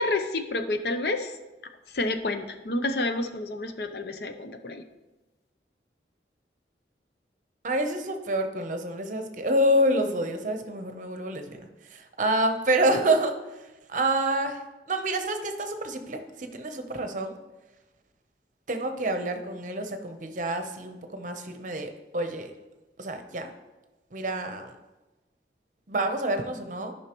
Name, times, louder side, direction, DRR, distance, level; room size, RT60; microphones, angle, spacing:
voice 1, 0.0-1.3 1.9-4.8, left 2 dB, 65° left, 8 dB, 0.6 m, -29 dB
voice 2, 7.6-13.6 13.9-17.4 18.7-22.5 23.0-23.5 24.1-24.7 25.9-26.9, right 1 dB, 45° right, 6 dB, 0.8 m, -28 dB
13.0 x 5.5 x 3.0 m, 1.1 s
head